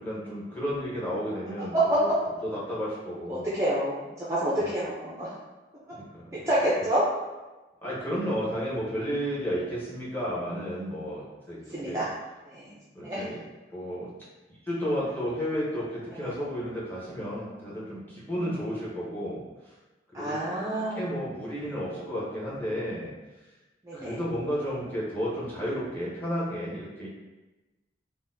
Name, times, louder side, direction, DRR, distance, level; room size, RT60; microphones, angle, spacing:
voice 1, 0.0-2.1 2.4-3.5 4.6-4.7 5.9-6.3 6.8-6.9 7.8-11.6 11.8-12.0 12.9-13.4 13.7-14.1 14.7-19.7 20.2-23.1 23.9-27.1, equal, 10° left, -8 dB, 0.9 m, -32 dB
voice 2, 3.3-5.3 6.3-7.0 11.7-12.1 12.5-12.7 13.0-13.2 16.1-16.3 18.4-18.5 20.1-21.0 23.9-24.2, right 1 dB, 15° right, -8 dB, 0.4 m, -28 dB
3.8 x 2.1 x 2.6 m, 1.1 s
head